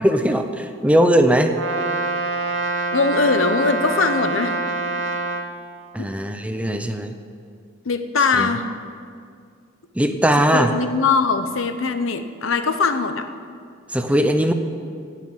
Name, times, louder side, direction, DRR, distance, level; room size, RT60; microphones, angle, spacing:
voice 1, 0.0-1.6 5.9-7.2 8.3-8.5 10.0-10.7 13.9-14.5, equal, 5° right, 7 dB, 0.6 m, -19 dB
Brass instrument, 1.5-5.5, right 3 dB, 60° right, 1.2 m, -25 dB
voice 2, 2.9-4.6 6.0-6.1 7.8-8.7 10.5-13.3, left 4 dB, 85° left, 9 dB, 0.8 m, -21 dB
16.5 x 5.8 x 9.1 m, 2.3 s
head